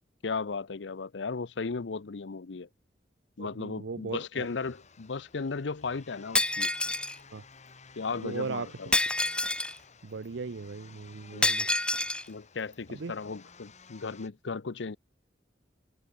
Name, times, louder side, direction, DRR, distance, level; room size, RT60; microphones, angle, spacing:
voice 1, 0.2-2.7 3.4-6.7 8.0-9.0 11.3-11.5 12.3-15.0, left 4 dB, 75° left, 0.7 m, -36 dB
voice 2, 3.4-4.5 7.3-7.4 8.2-8.7 10.0-11.7 13.0-13.1, right 4 dB, 80° right, 0.6 m, -37 dB
sound 1, 4.4-14.3, left 5 dB, 40° left, 2.8 m, -54 dB
Shatter, 6.3-7.2 8.9-9.8 11.4-12.2, left 2 dB, 5° left, 0.4 m, -27 dB
head